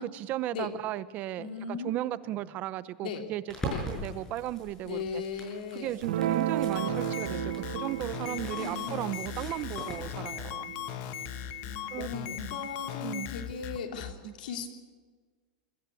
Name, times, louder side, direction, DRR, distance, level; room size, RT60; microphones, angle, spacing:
voice 1, 0.0-5.2 5.7-10.7 11.9-12.1 13.0-13.3 14.2-14.3, right 14 dB, 35° right, 16 dB, 0.7 m, -36 dB
voice 2, 1.4-1.9 2.3-2.4 3.0-3.3 3.7-3.9 4.9-6.0 8.3-9.2 10.1-10.3 11.2-11.3 11.6-14.7, left 5 dB, 85° left, 4 dB, 3.2 m, -38 dB
sound 1, 3.5-10.2, left 1 dB, 10° left, 6.6 m, -42 dB
Guitar, 6.0-12.6, right 11 dB, 85° right, 1.0 m, -35 dB
sound 2, 6.7-14.1, left 11 dB, 50° left, 1.2 m, -38 dB
23.0 x 14.5 x 8.4 m, 1.5 s
supercardioid pair, 150°, 5 cm